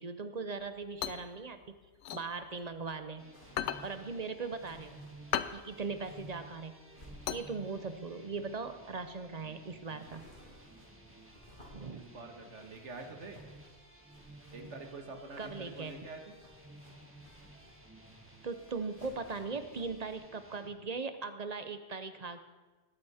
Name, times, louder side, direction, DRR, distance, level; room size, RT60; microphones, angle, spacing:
voice 1, 0.0-1.8 2.1-3.3 3.8-5.0 5.5-6.8 7.3-10.3 11.7-12.1 15.4-15.9 18.4-22.4, right 4 dB, 40° right, 10 dB, 0.7 m, -39 dB
sound 1, 0.6-3.1 3.4-8.1, left 10 dB, 90° left, 0.9 m, -38 dB
sound 2, 3.2-20.7, right 1 dB, 10° right, 1.5 m, -55 dB
sound 3, 3.3-20.2, equal, 45° left, 2.8 m, -60 dB
voice 2, 11.9-13.4 14.5-16.2, right 3 dB, 85° right, 4 dB, 1.8 m, -46 dB
20.0 x 8.4 x 4.3 m, 1.3 s
omnidirectional pair, 1.2 m